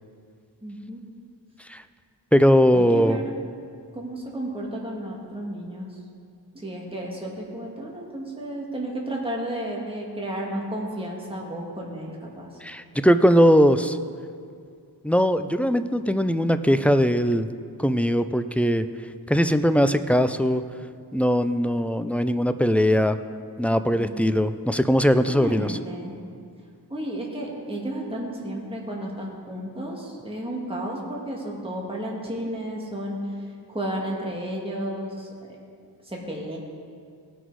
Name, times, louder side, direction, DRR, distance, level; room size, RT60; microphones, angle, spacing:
voice 1, 0.6-1.0 2.7-3.2 3.9-6.0 6.5-12.5 23.9-24.1 25.3-26.2 26.9-35.6 36.0-36.6, right 1 dB, 15° right, -3 dB, 1.9 m, -32 dB
voice 2, 2.3-3.2 12.6-14.0 15.0-17.5 17.8-18.9 19.3-20.6 21.1-23.2 23.6-25.8, equal, 5° left, 10 dB, 0.4 m, -20 dB
18.0 x 6.1 x 4.7 m, 2.2 s
wide cardioid pair, 55°, 43 cm